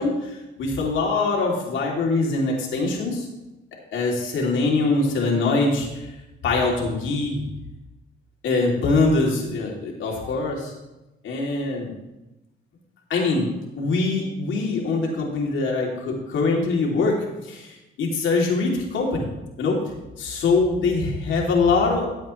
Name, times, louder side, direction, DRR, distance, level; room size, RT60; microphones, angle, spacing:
voice 1, 0.0-3.3 3.9-6.1 6.4-7.4 8.4-10.7 11.2-11.9 13.1-13.5 13.8-19.3 19.6-19.8 20.2-22.1, left 3 dB, 75° left, -1 dB, 2.9 m, -23 dB
14.5 x 7.9 x 3.2 m, 1.0 s
cardioid pair, 90°, 20 cm